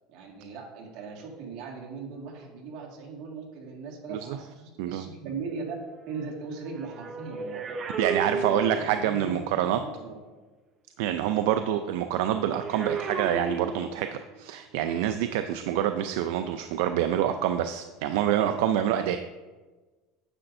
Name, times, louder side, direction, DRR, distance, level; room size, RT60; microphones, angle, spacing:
voice 1, 0.1-5.8 6.1-7.7 8.2-10.2 11.7-11.8, right 4 dB, 55° right, -1 dB, 1.9 m, -39 dB
sound 1, 6.5-9.2 12.3-14.3 15.1-15.3, right 4 dB, 25° right, 0.6 m, -34 dB
voice 2, 8.0-9.8 11.0-19.2, right 10 dB, 75° right, 8 dB, 0.4 m, -26 dB
10.0 x 7.6 x 2.6 m, 1.3 s
cardioid pair, 150°, 0 cm